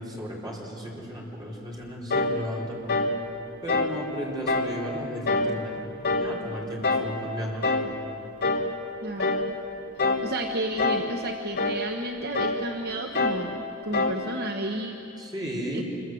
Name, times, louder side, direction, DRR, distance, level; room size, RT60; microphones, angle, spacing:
voice 1, 0.0-3.1 3.6-5.8 6.2-7.7 15.2-15.8, equal, 20° right, -3 dB, 4.4 m, -35 dB
sound 1, 2.1-2.4 2.9-3.2 3.7-4.0 4.5-4.8 5.3-5.6 6.0-6.4 6.8-7.1 7.6-7.9 8.4-8.7 9.2-9.5 10.0-10.3 10.8-11.1 11.6-11.8 12.4-12.6 13.2-13.5 13.9-14.2, left 3 dB, 50° left, 1.9 m, -25 dB
voice 2, 9.0-9.4 10.0-15.0 15.7-15.8, right 1 dB, 50° right, 3 dB, 1.1 m, -32 dB
26.0 x 24.0 x 7.7 m, 2.9 s
head